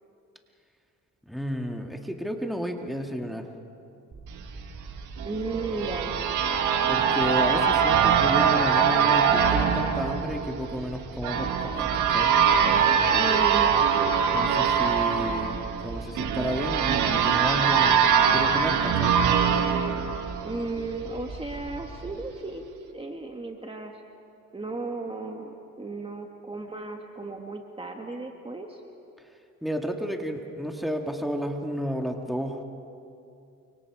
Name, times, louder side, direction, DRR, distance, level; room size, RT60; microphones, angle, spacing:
voice 1, 1.2-3.5 6.9-12.3 14.3-19.2 29.6-32.6, equal, ahead, 3 dB, 2.0 m, -32 dB
sound 1, 4.1-22.1, right 3 dB, 40° right, 4.7 m, -41 dB
voice 2, 5.2-6.1 13.1-14.2 20.4-22.6 22.9-24.0 24.5-28.8, right 3 dB, 20° right, 3 dB, 1.6 m, -34 dB
sound 2, 5.2-20.9, right 7 dB, 85° right, 1.8 m, -23 dB
29.0 x 25.0 x 4.9 m, 2.6 s
cardioid pair, 90°, 30 cm